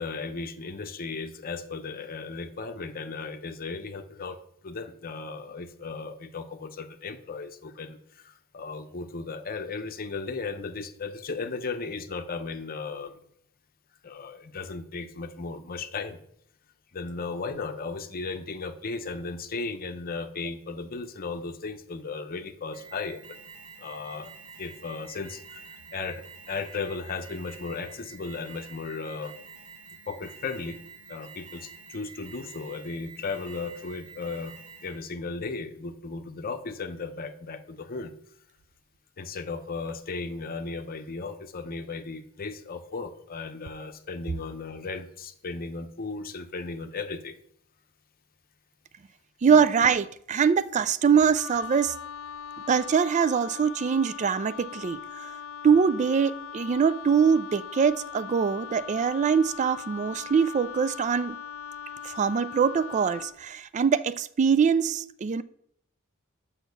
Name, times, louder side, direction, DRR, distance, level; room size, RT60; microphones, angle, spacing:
voice 1, 0.0-13.2 14.0-16.2 16.9-23.4 23.8-24.3 24.6-29.3 30.1-30.8 31.1-34.6 34.8-38.1 39.2-47.4 49.5-49.6, left 4 dB, 45° left, 0.7 m, -36 dB
Alarm, 22.7-35.1, right 5 dB, 85° right, 1.7 m, -48 dB
voice 2, 49.4-52.0 52.7-55.3 55.6-61.4 62.0-65.4, right 6 dB, 35° right, 0.3 m, -23 dB
Wind instrument woodwind instrument, 51.3-63.4, left 7 dB, 65° left, 0.3 m, -40 dB
6.3 x 5.7 x 6.8 m
head